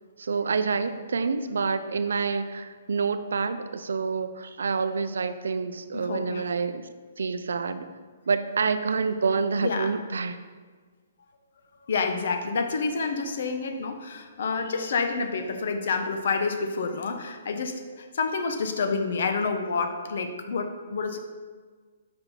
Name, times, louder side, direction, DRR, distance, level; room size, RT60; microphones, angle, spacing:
voice 1, 0.2-6.9 7.2-7.9 8.3-10.4, right 5 dB, 85° right, 10 dB, 0.4 m, -27 dB
voice 2, 5.9-6.4 9.5-9.9 11.9-21.2, left 4 dB, 60° left, 6 dB, 0.6 m, -28 dB
5.2 x 4.1 x 4.4 m, 1.5 s
hypercardioid pair, 165°, 0 cm